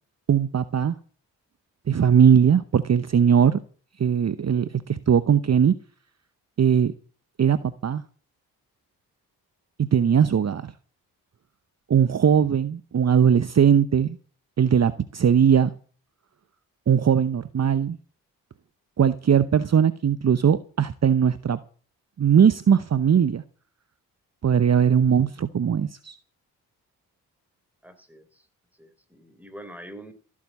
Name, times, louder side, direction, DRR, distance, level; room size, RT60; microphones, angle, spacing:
voice 1, 0.3-1.0 1.9-3.6 4.0-5.7 6.6-6.9 7.4-8.0 9.8-10.7 11.9-14.2 14.6-15.7 16.9-18.0 19.0-21.6 22.2-23.4 24.4-26.1, right 7 dB, 40° right, 14 dB, 0.8 m, -20 dB
voice 2, 27.8-28.5 28.8-30.1, right 1 dB, 5° right, 9 dB, 3.6 m, -44 dB
16.0 x 7.5 x 8.2 m, 0.41 s
supercardioid pair, 40°, 40 cm